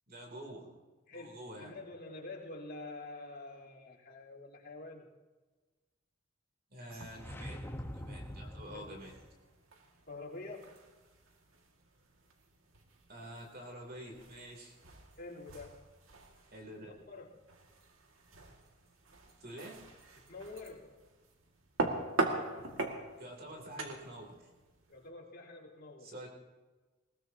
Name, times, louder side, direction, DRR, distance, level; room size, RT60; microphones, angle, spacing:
voice 1, 0.1-0.7 1.1-1.7 6.7-7.6 7.8-9.1 13.1-14.7 16.5-16.9 19.4-19.8 23.2-24.5 26.0-26.3, right 1 dB, 50° right, 0 dB, 3.4 m, -47 dB
voice 2, 1.1-5.1 8.7-8.9 10.1-10.8 15.2-15.8 16.8-17.3 20.2-21.1 24.9-26.1, left 2 dB, 50° left, -4 dB, 3.6 m, -47 dB
sound 1, 6.9-25.1, right 2 dB, 90° right, 2.2 m, -43 dB
sound 2, 7.1-9.3, equal, 10° left, 1.1 m, -44 dB
20.5 x 20.0 x 2.9 m, 1.3 s
head